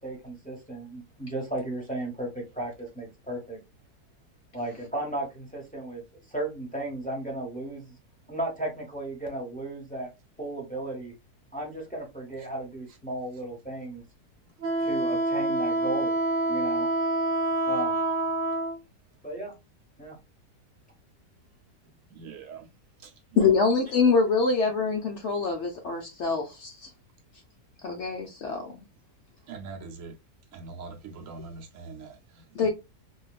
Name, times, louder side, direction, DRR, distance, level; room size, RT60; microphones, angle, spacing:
voice 1, 0.0-3.6 4.5-8.0 8.3-10.1 10.4-11.1 11.5-14.0 14.8-16.2 16.5-16.9 17.7-18.0 19.2-19.5 20.0-20.2, right 1 dB, 10° left, 0.6 m, -35 dB
Wind instrument woodwind instrument, 14.6-18.8, right 2 dB, 40° right, 0.6 m, -26 dB
voice 2, 22.1-22.7 23.0-23.6 29.5-30.2 30.5-32.7, right 4 dB, 70° right, 0.8 m, -42 dB
voice 3, 23.4-26.9 27.8-28.8 32.5-32.7, left 4 dB, 75° left, 0.6 m, -25 dB
3.2 x 2.3 x 2.3 m
omnidirectional pair, 1.8 m